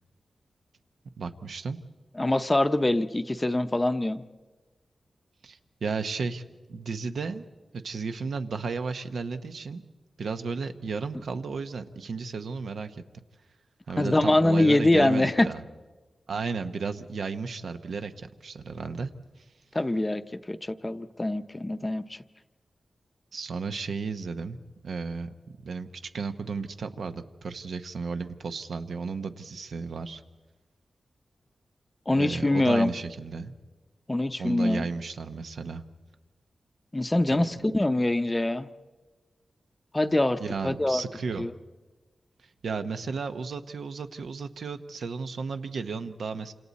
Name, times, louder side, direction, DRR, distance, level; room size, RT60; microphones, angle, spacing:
voice 1, 1.2-1.8 5.4-6.4 6.7-7.4 7.7-9.8 10.2-13.2 13.9-15.6 16.3-19.1 19.4-19.5 23.3-24.6 24.8-25.3 25.6-30.2 32.1-33.5 34.4-35.8 40.4-41.5 42.6-46.5, right 4 dB, 80° right, 8 dB, 0.9 m, -34 dB
voice 2, 2.2-4.2 14.0-15.5 19.7-20.2 20.5-22.2 32.1-32.9 34.1-34.9 36.9-38.7 39.9-41.0 41.4-41.5, left 1 dB, 15° left, 10 dB, 0.6 m, -24 dB
28.0 x 26.5 x 4.2 m, 1.3 s
wide cardioid pair, 155°, 0 cm